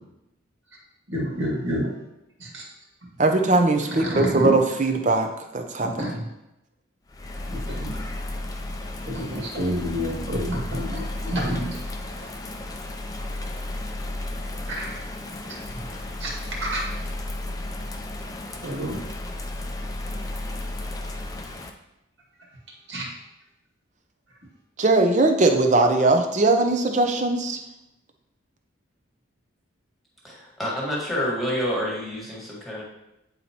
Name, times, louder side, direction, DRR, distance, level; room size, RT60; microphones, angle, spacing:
voice 1, 1.1-1.9 2.4-2.7 3.8-4.6 5.8-6.3 7.5-8.0 9.1-11.8 14.7-15.0 16.2-16.9 18.6-19.0 22.9-23.1, equal, 70° right, -3 dB, 1.9 m, -29 dB
voice 2, 3.2-6.1 24.8-27.6, right 2 dB, 35° right, 5 dB, 0.6 m, -20 dB
Bird vocalization bird call bird song / Rain, 7.1-21.7, left 1 dB, 20° left, 0.4 m, -33 dB
voice 3, 30.2-32.8, equal, ahead, -5 dB, 1.6 m, -28 dB
9.3 x 4.1 x 2.9 m, 0.89 s
head